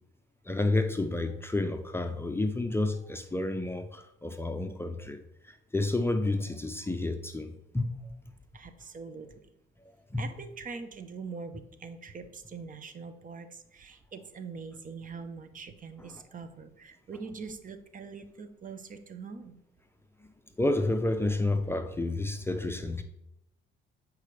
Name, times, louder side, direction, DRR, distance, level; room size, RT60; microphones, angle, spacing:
voice 1, 0.5-7.9 10.1-10.2 16.1-16.2 20.6-23.0, left 2 dB, 10° left, 7 dB, 0.6 m, -30 dB
voice 2, 8.5-9.3 10.2-19.6, right 5 dB, 40° right, 9 dB, 0.8 m, -43 dB
8.3 x 4.9 x 3.2 m, 0.81 s
cardioid pair, 100°, 21 cm